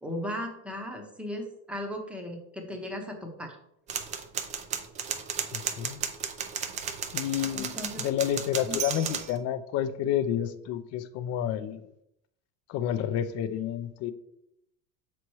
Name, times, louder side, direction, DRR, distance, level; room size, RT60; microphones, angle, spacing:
voice 1, 0.0-3.6 7.5-8.0 8.7-8.8, left 1 dB, 5° right, 3 dB, 0.8 m, -36 dB
manual typewriter, 3.9-9.3, right 7 dB, 20° right, 0.3 m, -34 dB
voice 2, 5.5-6.0 7.1-11.9 12.7-14.1, left 10 dB, 40° left, 11 dB, 0.5 m, -30 dB
6.6 x 4.3 x 4.6 m, 0.78 s
cardioid pair, 160°, 39 cm